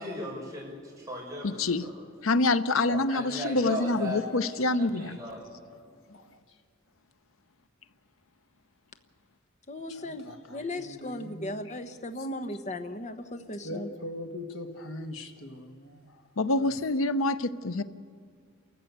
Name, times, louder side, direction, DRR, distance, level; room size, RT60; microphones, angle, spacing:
voice 1, 0.0-1.9 2.9-4.3 4.8-5.5, equal, 15° right, -3 dB, 6.0 m, -37 dB
voice 2, 1.4-1.9 2.2-5.2 16.4-17.8, left 2 dB, 90° left, 13 dB, 0.8 m, -26 dB
voice 3, 5.7-6.6 9.9-11.7 13.6-16.3 16.6-16.7, left 1 dB, 70° left, 4 dB, 1.5 m, -42 dB
voice 4, 9.7-13.9, left 1 dB, 35° left, 8 dB, 1.1 m, -37 dB
29.0 x 14.5 x 8.1 m, 2.1 s
head